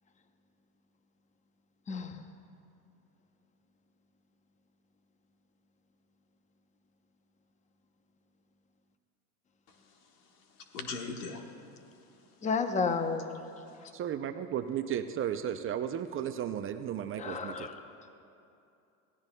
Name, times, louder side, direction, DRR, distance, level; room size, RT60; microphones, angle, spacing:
voice 1, 1.9-2.2 12.4-13.4 17.2-17.9, left 4 dB, 15° left, 8 dB, 0.7 m, -32 dB
voice 2, 9.7-11.5 13.7-13.9, left 4 dB, 85° left, 3 dB, 1.6 m, -42 dB
voice 3, 13.9-17.7, right 9 dB, 30° right, 9 dB, 0.5 m, -34 dB
24.0 x 16.5 x 2.3 m, 2.6 s
supercardioid pair, 110°, 44 cm